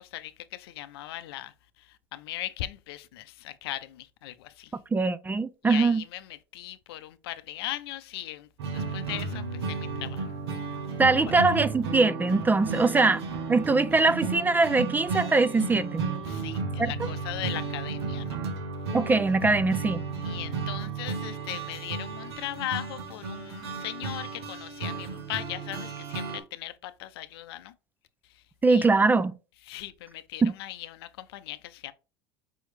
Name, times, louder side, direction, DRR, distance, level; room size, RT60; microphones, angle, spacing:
voice 1, 0.0-1.5 1.8-4.7 5.6-10.3 12.9-13.1 16.2-18.4 20.2-27.7 28.7-28.9 29.7-31.9, left 14 dB, 75° left, 0.5 m, -38 dB
voice 2, 4.9-6.0 11.0-13.2 13.5-16.0 16.8-17.1 18.9-20.0 28.6-29.3 30.4-30.5, right 3 dB, 15° right, 0.3 m, -22 dB
sound 1, 8.6-26.4, right 4 dB, 80° right, 1.1 m, -33 dB
5.4 x 3.1 x 3.2 m
hypercardioid pair, 90°, 13 cm